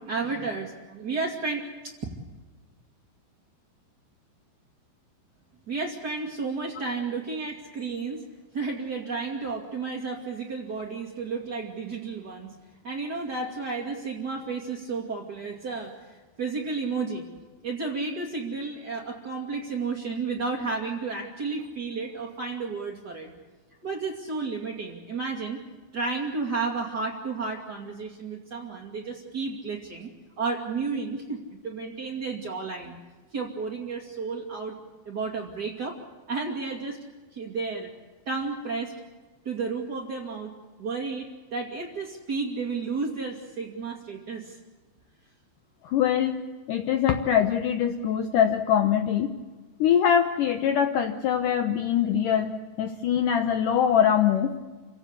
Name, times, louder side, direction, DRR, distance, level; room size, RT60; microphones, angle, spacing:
voice 1, 0.0-1.9 5.7-8.2 8.5-12.5 12.8-17.2 17.6-23.3 23.8-25.6 25.9-30.1 30.4-32.9 33.3-34.7 35.1-36.0 36.3-37.0 37.3-37.9 38.3-38.9 39.4-44.6, right 4 dB, 30° right, -2 dB, 2.0 m, -32 dB
voice 2, 45.8-46.4 46.7-49.3 49.8-52.5 52.8-54.5, left 9 dB, 85° left, 6 dB, 1.8 m, -23 dB
28.5 x 17.0 x 8.3 m, 1.3 s
omnidirectional pair, 5.3 m